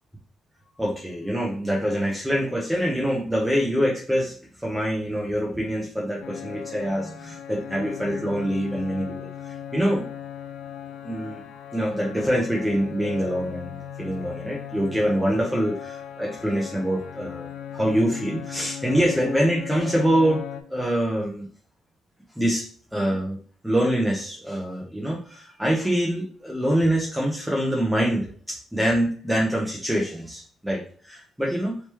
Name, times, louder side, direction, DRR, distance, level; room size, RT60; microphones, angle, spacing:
voice 1, 0.8-4.3 4.6-10.0 11.0-11.5 11.7-21.5 22.4-22.7 22.9-31.8, equal, ahead, -3 dB, 0.8 m, -25 dB
sound 1, 6.2-20.6, left 9 dB, 80° left, 0.5 m, -37 dB
3.3 x 3.0 x 3.1 m, 0.43 s
cardioid pair, 90°, 0 cm